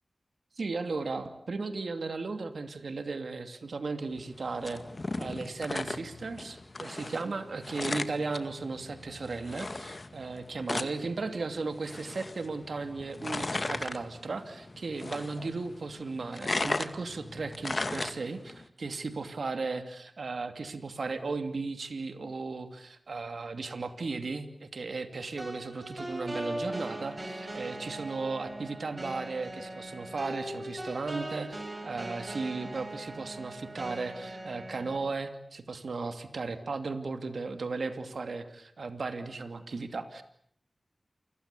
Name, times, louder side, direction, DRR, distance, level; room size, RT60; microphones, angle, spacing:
voice 1, 0.6-4.8 5.2-40.2, right 3 dB, 85° right, 8 dB, 2.7 m, -36 dB
sound 1, 4.2-18.6, left 2 dB, 45° left, 2.0 m, -37 dB
sound 2, 25.4-35.0, right 1 dB, 30° right, 7.6 m, -40 dB
29.0 x 23.0 x 8.5 m, 0.67 s
wide cardioid pair, 75°, 0 cm